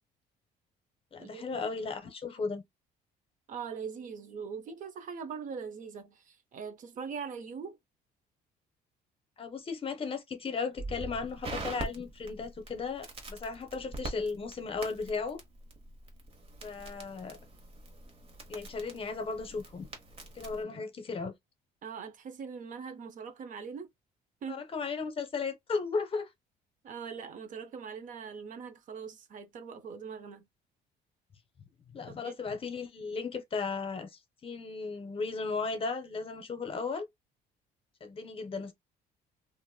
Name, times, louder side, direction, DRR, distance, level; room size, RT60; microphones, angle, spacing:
voice 1, 1.1-2.6 9.4-15.4 16.6-17.4 18.5-19.9 20.4-21.3 24.5-26.3 31.9-37.1 38.0-38.7, left 4 dB, 35° left, 0.7 m, -35 dB
voice 2, 3.5-7.8 21.8-23.9 24.4-24.6 26.8-30.5 32.1-32.3, right 6 dB, 50° right, 0.6 m, -41 dB
Crackle, 10.8-20.6, right 2 dB, 35° right, 1.0 m, -44 dB
2.9 x 2.5 x 2.3 m
cardioid pair, 110°, 17 cm